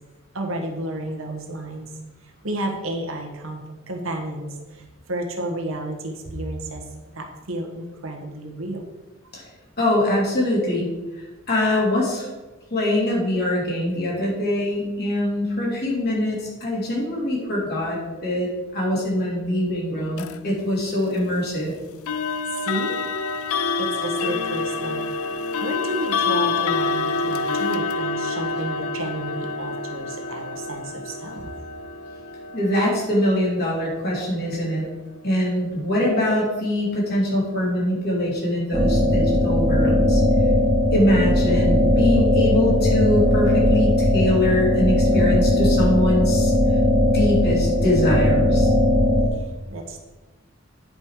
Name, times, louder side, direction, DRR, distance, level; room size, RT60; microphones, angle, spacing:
voice 1, 0.3-1.9 2.2-6.9 7.1-8.8 22.6-23.0 23.4-25.1 25.6-31.5 49.3-50.0, right 1 dB, 65° right, 2 dB, 1.5 m, -31 dB
voice 2, 9.8-10.9 11.2-12.3 12.7-21.7 32.5-34.9 35.2-40.2 40.9-46.5 47.1-48.7, left 1 dB, 50° left, -4 dB, 3.1 m, -23 dB
sound 1, 20.2-20.4 22.1-34.9, left 4 dB, 85° left, 0.5 m, -27 dB
sound 2, 38.7-49.3, left 1 dB, 15° right, 1.6 m, -18 dB
9.6 x 5.3 x 4.8 m, 1.2 s
head